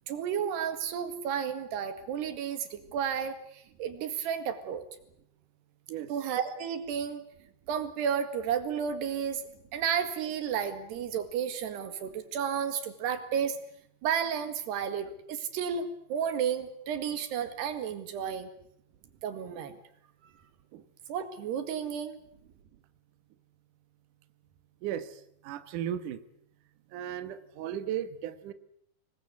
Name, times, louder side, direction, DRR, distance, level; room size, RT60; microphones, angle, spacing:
voice 1, 0.1-4.8 6.1-7.3 7.7-9.4 9.7-13.6 14.0-18.5 19.2-19.7 21.1-22.2, right 8 dB, 90° right, 9 dB, 4.1 m, -32 dB
voice 2, 24.8-26.2 26.9-28.5, right 10 dB, 60° right, 11 dB, 2.5 m, -36 dB
26.5 x 21.0 x 8.4 m, 0.70 s
omnidirectional pair, 4.7 m